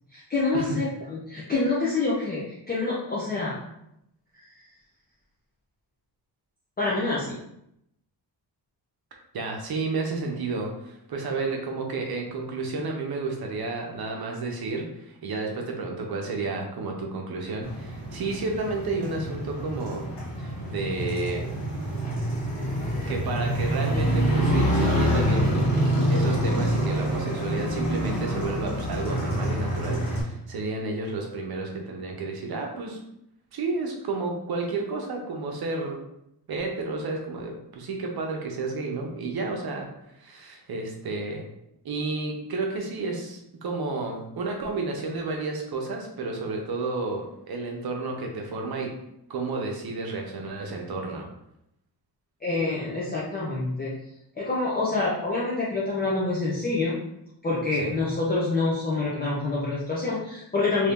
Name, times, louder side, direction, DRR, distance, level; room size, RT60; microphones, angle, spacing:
voice 1, 0.1-3.6 6.8-7.4 52.4-53.9 54.4-57.0 57.4-60.9, left 3 dB, 20° left, -7 dB, 0.6 m, -27 dB
voice 2, 9.3-20.1 20.4-21.4 23.1-25.8 26.1-33.0 33.5-36.0 36.5-39.9 40.2-41.4 41.8-48.9 49.3-51.3 57.8-57.9 60.8-60.9, right 3 dB, 60° right, 1 dB, 0.8 m, -31 dB
Motorcycle, 17.6-30.2, equal, 40° left, 1.1 m, -26 dB
2.8 x 2.7 x 3.5 m, 0.80 s
wide cardioid pair, 140°, 42 cm